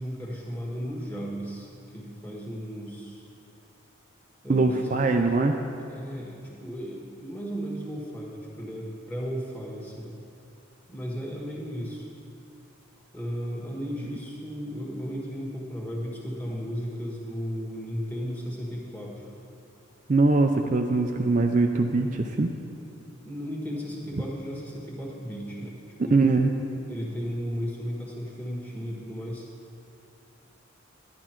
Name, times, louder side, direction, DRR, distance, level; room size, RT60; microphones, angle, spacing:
voice 1, 0.0-3.2 4.4-5.2 5.9-10.1 10.9-12.1 13.1-19.3 23.2-25.8 26.0-26.2 26.9-29.4, equal, 10° left, -3 dB, 1.5 m, -35 dB
voice 2, 4.5-5.5 20.1-22.5 26.1-26.5, right 3 dB, 35° right, 4 dB, 0.4 m, -22 dB
11.0 x 11.0 x 4.5 m, 2.7 s
head